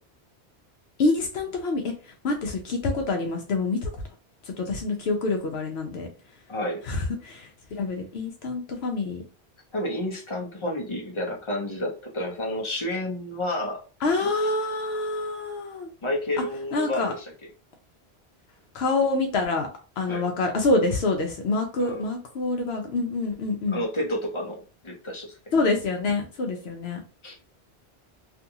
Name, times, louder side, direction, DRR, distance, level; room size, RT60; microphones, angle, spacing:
voice 1, 1.0-1.9 2.2-3.9 4.5-6.1 6.8-9.2 14.0-15.9 16.7-17.1 18.7-19.7 20.0-23.8 25.5-27.0, left 3 dB, 75° left, 3 dB, 0.9 m, -26 dB
voice 2, 6.5-6.8 9.7-13.8 14.2-14.3 16.0-17.3 20.1-20.3 21.8-22.1 23.7-25.4 27.2-27.3, left 1 dB, 30° left, 0 dB, 0.7 m, -30 dB
2.6 x 2.4 x 2.7 m, 0.35 s
omnidirectional pair, 1.1 m